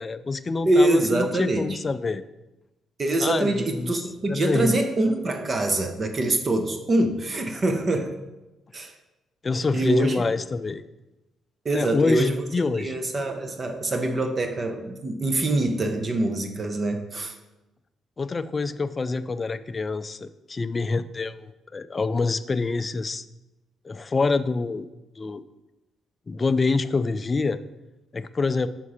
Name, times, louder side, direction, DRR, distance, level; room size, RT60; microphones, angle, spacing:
voice 1, 0.0-2.2 3.2-4.0 4.3-4.7 9.4-10.8 11.7-12.9 18.2-23.3 23.8-24.9 25.2-25.4 26.3-27.6 28.1-28.7, left 3 dB, 30° left, 13 dB, 0.4 m, -26 dB
voice 2, 0.7-1.8 3.0-8.1 8.7-8.9 9.7-10.3 11.6-12.4 12.7-17.3, right 2 dB, 35° right, 6 dB, 0.8 m, -24 dB
5.9 x 5.4 x 4.9 m, 1.0 s
cardioid pair, 90°, 0 cm